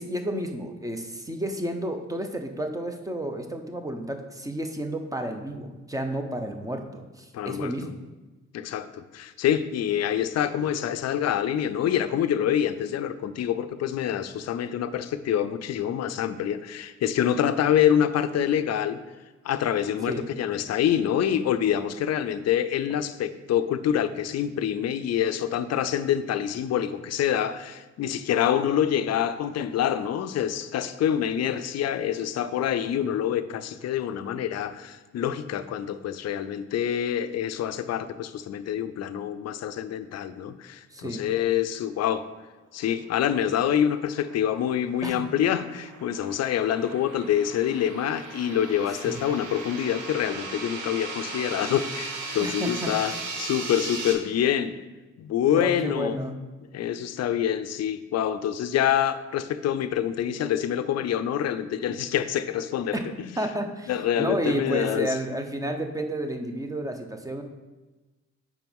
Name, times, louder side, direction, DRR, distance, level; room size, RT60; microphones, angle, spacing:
voice 1, 0.0-7.9 20.1-20.3 40.9-41.3 45.0-45.3 49.1-49.2 52.4-52.9 55.5-56.3 62.9-63.1 63.4-67.4, right 1 dB, 10° right, 6 dB, 0.8 m, -31 dB
voice 2, 7.3-7.9 8.5-19.0 19.4-42.3 42.7-54.7 55.2-56.2 56.7-63.3 63.9-65.1, left 10 dB, 60° left, 11 dB, 0.5 m, -26 dB
sound 1, 43.7-54.1, right 3 dB, 75° right, 1.3 m, -37 dB
6.0 x 4.6 x 5.3 m, 1.2 s
cardioid pair, 90°, 30 cm